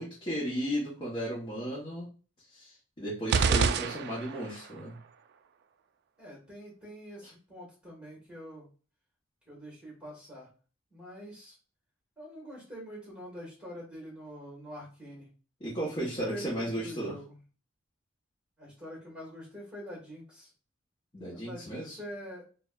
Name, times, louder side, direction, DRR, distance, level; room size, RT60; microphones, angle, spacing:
voice 1, 0.0-2.1 2.5-5.0 15.6-17.2 21.1-22.0, equal, 30° left, -7 dB, 1.1 m, -35 dB
sound 1, 3.3-4.6, right 5 dB, 55° right, 0.3 m, -27 dB
voice 2, 6.2-8.7 9.5-10.5 10.9-11.6 12.2-15.3 15.9-17.4 18.6-20.5 21.3-22.4, equal, 5° right, -4 dB, 1.7 m, -45 dB
4.8 x 2.3 x 2.4 m, 0.37 s
head